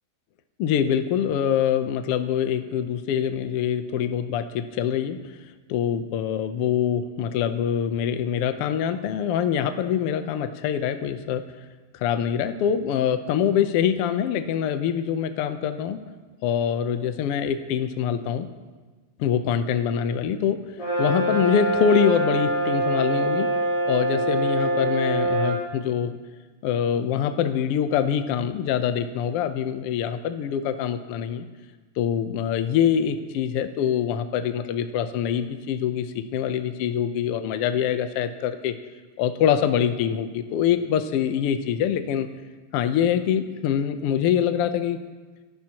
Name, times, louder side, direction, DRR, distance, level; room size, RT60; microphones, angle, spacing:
voice 1, 0.6-5.4 5.7-11.4 11.9-16.0 16.4-18.5 19.2-20.6 21.0-23.5 23.9-26.1 26.6-31.5 32.0-38.7 39.2-42.3 42.7-45.0, left 8 dB, 85° left, 8 dB, 1.3 m, -24 dB
Brass instrument, 20.8-25.7, right 1 dB, 55° left, 4.8 m, -24 dB
30.0 x 14.0 x 3.0 m, 1.3 s
omnidirectional pair, 3.8 m